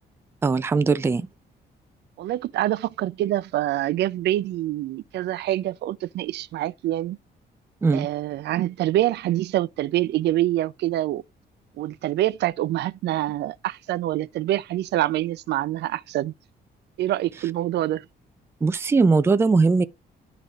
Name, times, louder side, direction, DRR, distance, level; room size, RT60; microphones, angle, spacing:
voice 1, 0.4-1.3 7.8-8.1 18.6-19.8, right 4 dB, 15° right, 0.4 m, -20 dB
voice 2, 2.2-7.2 7.9-11.2 11.8-16.3 17.0-18.1, right 14 dB, 80° right, 0.4 m, -25 dB
11.5 x 4.0 x 2.4 m
cardioid pair, 140°, 18 cm